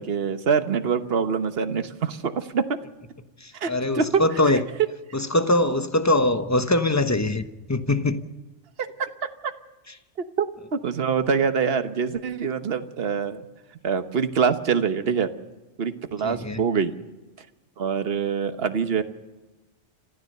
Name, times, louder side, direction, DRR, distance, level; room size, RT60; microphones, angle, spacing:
voice 1, 0.0-2.6 3.5-3.7 3.9-4.2 8.8-9.5 10.4-10.5 10.7-13.4 13.8-15.3 15.8-16.9 17.8-19.0, right 6 dB, 60° right, 1.4 m, -25 dB
voice 2, 3.4-4.6 5.1-8.2 16.2-16.6, left 2 dB, 15° left, 1.0 m, -23 dB
26.5 x 15.0 x 6.7 m
omnidirectional pair, 1.2 m